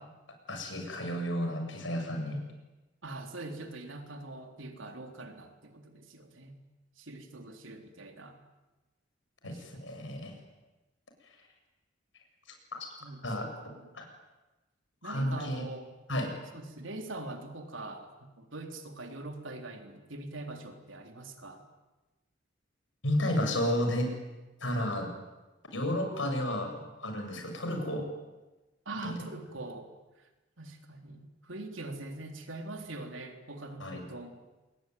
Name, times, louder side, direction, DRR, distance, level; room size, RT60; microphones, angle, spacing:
voice 1, 0.5-2.4 9.4-9.5 9.8-10.3 13.2-13.5 13.9-14.0 15.0-15.6 16.1-16.3 23.0-24.1 24.6-25.1 25.7-28.1 29.0-29.2 33.8-34.0, left 1 dB, 75° left, 4 dB, 7.6 m, -31 dB
voice 2, 3.0-6.6 7.0-8.4 9.4-9.9 13.0-13.2 13.6-13.9 15.0-15.9 16.5-18.1 18.4-21.7 28.9-29.9 30.2-30.3 30.6-34.4, right 2 dB, 90° right, 5 dB, 3.9 m, -43 dB
28.0 x 21.5 x 9.5 m, 1.1 s
head